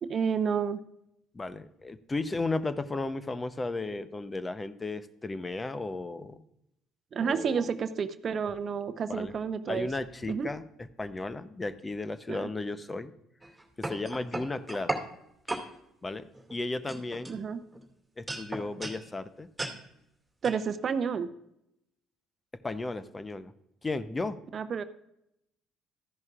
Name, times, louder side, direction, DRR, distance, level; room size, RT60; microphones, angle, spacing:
voice 1, 0.0-0.8 7.1-9.9 10.3-10.5 12.3-12.5 17.3-17.6 20.4-21.3 24.5-24.8, right 6 dB, 50° right, 11 dB, 0.7 m, -30 dB
voice 2, 1.3-6.4 7.2-7.7 8.4-8.6 9.1-9.4 9.7-13.1 13.8-14.9 16.0-17.4 18.2-19.5 22.6-23.5 23.8-24.4, left 3 dB, 25° left, 13 dB, 0.8 m, -34 dB
sound 1, 13.4-15.1 15.5-15.7 16.3-16.6 16.9-17.8 18.3-19.0 19.6-19.8 20.4-20.6, right 2 dB, 15° right, 2.3 m, -35 dB
13.5 x 10.5 x 2.5 m, 0.80 s
hypercardioid pair, 55°, 0 cm